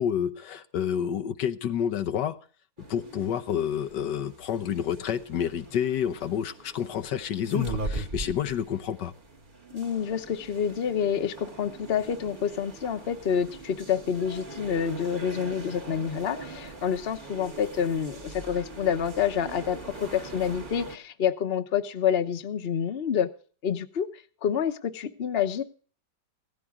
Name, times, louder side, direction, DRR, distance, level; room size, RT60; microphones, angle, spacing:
voice 1, 0.0-2.4 2.9-9.1, left 9 dB, 80° left, 9 dB, 1.5 m, -29 dB
sound 1, 2.8-21.0, right 1 dB, 30° right, 1.4 m, -40 dB
voice 2, 9.7-23.3 23.6-24.1 24.4-25.6, left 8 dB, 40° left, 8 dB, 1.1 m, -28 dB
17.0 x 14.5 x 3.7 m, 0.42 s
omnidirectional pair, 1.8 m